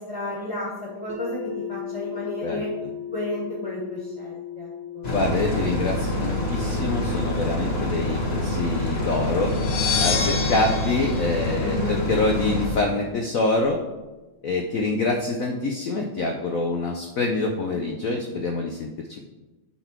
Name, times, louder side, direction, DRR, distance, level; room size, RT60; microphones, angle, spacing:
voice 1, 0.0-2.7 3.1-5.1 11.6-12.0, left 1 dB, 15° left, -5 dB, 1.9 m, -32 dB
sound 1, 1.1-13.0, left 9 dB, 5° right, 1.6 m, -39 dB
sound 2, 5.0-12.7, left 1 dB, 30° left, 1.5 m, -26 dB
voice 2, 5.1-9.5 10.0-13.8 14.4-19.2, left 3 dB, 90° left, 2 dB, 0.7 m, -26 dB
sound 3, 9.5-12.3, left 5 dB, 60° left, 1.3 m, -28 dB
9.6 x 4.1 x 4.5 m, 1.1 s
omnidirectional pair, 2.4 m